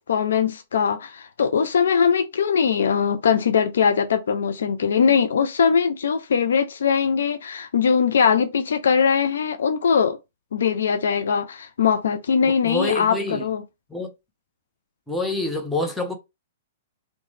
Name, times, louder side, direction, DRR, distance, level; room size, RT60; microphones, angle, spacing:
voice 1, 0.1-10.2 10.5-13.6, left 6 dB, 60° left, 0.3 m, -21 dB
voice 2, 12.6-13.5 13.9-14.1 15.1-16.2, left 2 dB, 5° left, 0.7 m, -26 dB
3.0 x 2.1 x 3.2 m
figure-of-eight pair, 110°, 0 cm